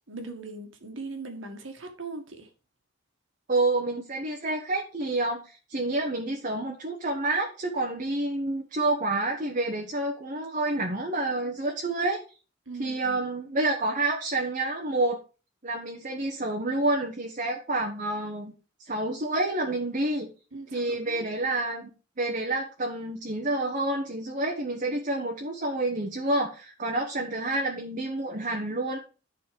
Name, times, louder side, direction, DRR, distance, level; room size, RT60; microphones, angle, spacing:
voice 1, 0.1-2.5 12.6-13.2 20.5-21.3, right 3 dB, 85° right, 1.8 m, -40 dB
voice 2, 3.5-12.2 12.8-15.2 15.6-18.5 18.8-20.3 20.7-21.9 22.2-29.0, right 2 dB, 45° right, 1.2 m, -28 dB
11.0 x 4.2 x 5.2 m
head